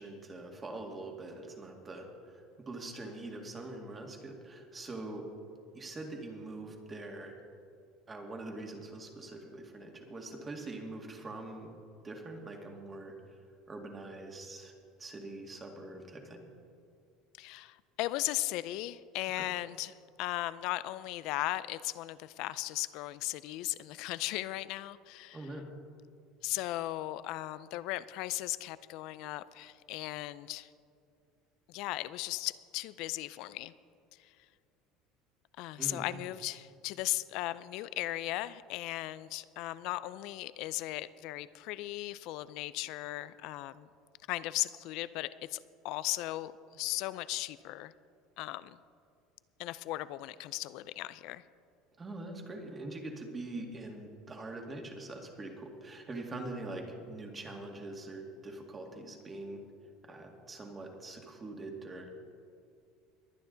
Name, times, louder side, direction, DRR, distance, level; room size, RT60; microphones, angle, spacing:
voice 1, 0.0-2.1 2.3-5.3 5.7-7.4 8.1-11.7 12.0-13.1 13.7-14.7 15.0-16.4 19.4-19.5 25.3-25.7 35.8-36.1 52.0-59.6 60.0-62.1, right 2 dB, 25° right, 2 dB, 2.2 m, -43 dB
voice 2, 17.4-19.9 20.2-25.4 26.4-30.7 31.7-33.7 35.6-43.9 44.3-47.9 48.4-48.8 49.6-51.4, left 17 dB, 65° left, 16 dB, 0.5 m, -37 dB
22.0 x 9.5 x 4.0 m, 2.4 s
supercardioid pair, 115°, 0 cm